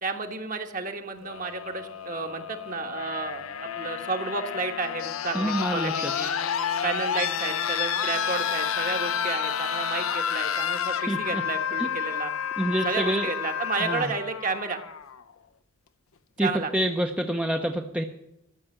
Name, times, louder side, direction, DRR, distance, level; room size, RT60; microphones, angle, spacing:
voice 1, 0.0-6.3 6.8-12.3 12.8-14.8 16.4-16.7, right 4 dB, 40° right, 5 dB, 1.3 m, -32 dB
sound 1, 1.2-15.2 16.4-16.5, left 8 dB, 85° left, 0.8 m, -30 dB
voice 2, 5.3-6.1 11.1-11.4 12.6-13.3 13.8-14.1 16.4-18.0, right 1 dB, 5° right, 3 dB, 0.7 m, -27 dB
13.5 x 6.6 x 9.8 m, 0.80 s
head